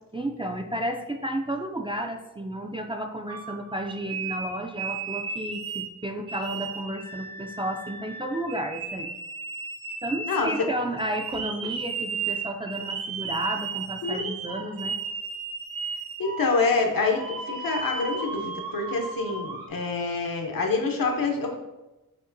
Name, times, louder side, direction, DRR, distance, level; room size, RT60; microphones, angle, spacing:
voice 1, 0.1-9.1 10.0-15.0, right 1 dB, 15° right, 3 dB, 0.3 m, -32 dB
sound 1, 3.3-5.9 6.3-19.7, right 5 dB, 80° right, 0.8 m, -35 dB
voice 2, 10.3-10.7 14.0-14.3 16.2-21.6, left 4 dB, 75° left, 2 dB, 0.8 m, -26 dB
6.4 x 2.9 x 2.6 m, 1.0 s
wide cardioid pair, 85°, 35 cm